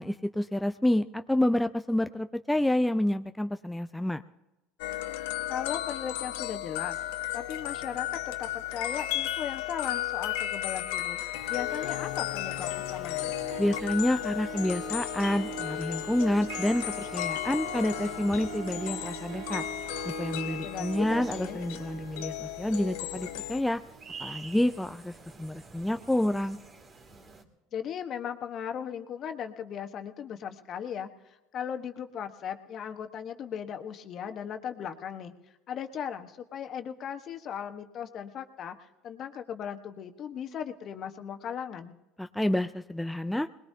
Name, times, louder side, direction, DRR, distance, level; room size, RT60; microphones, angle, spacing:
voice 1, 0.0-4.2 13.6-16.9 17.1-19.6 20.0-23.8 24.2-26.6 42.2-43.5, left 1 dB, 5° left, 8 dB, 0.4 m, -28 dB
sound 1, 4.8-23.6, left 13 dB, 80° left, 0.6 m, -34 dB
voice 2, 5.5-7.0 7.3-11.2 11.5-13.3 20.6-21.6 27.7-35.3 35.7-38.8 39.0-42.0, left 8 dB, 50° left, 7 dB, 1.2 m, -37 dB
sound 2, 11.3-27.4, right 4 dB, 35° right, 2.5 m, -51 dB
Harp, 11.5-25.4, right 9 dB, 70° right, 1.6 m, -44 dB
22.0 x 20.5 x 2.8 m, 1.0 s
supercardioid pair, 95°, 0 cm